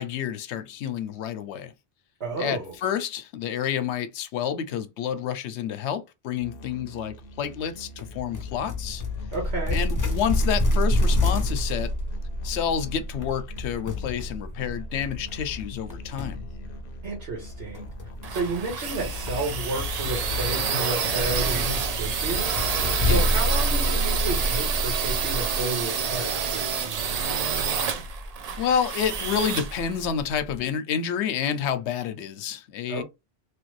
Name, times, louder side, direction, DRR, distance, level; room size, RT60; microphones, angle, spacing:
voice 1, 0.0-1.7 2.4-9.0 9.7-11.9 12.4-16.4 23.0-23.3 28.6-33.0, left 8 dB, 90° left, 0.9 m, -29 dB
voice 2, 2.2-2.7 9.3-9.8 17.0-17.9 18.3-22.5 23.0-27.4 32.9-33.0, right 2 dB, 80° right, 1.5 m, -32 dB
Musical instrument, 6.4-23.4, right 2 dB, 65° left, 0.7 m, -46 dB
sound 1, 8.0-25.4, left 1 dB, 20° left, 0.6 m, -28 dB
sound 2, 17.8-30.6, right 6 dB, 55° right, 0.4 m, -28 dB
3.1 x 2.4 x 3.1 m
omnidirectional pair, 1.1 m